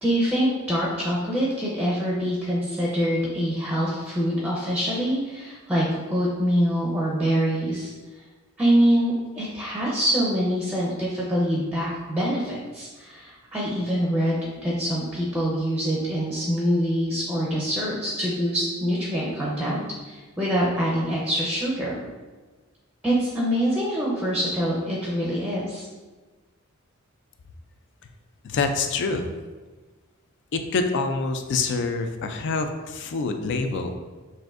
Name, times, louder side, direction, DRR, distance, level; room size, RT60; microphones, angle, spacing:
voice 1, 0.0-7.9 8.6-22.0 23.0-25.9, equal, 5° right, -5 dB, 0.5 m, -25 dB
voice 2, 28.4-29.3 30.5-33.9, left 4 dB, 55° left, 7 dB, 0.3 m, -26 dB
6.2 x 2.6 x 2.4 m, 1.3 s
head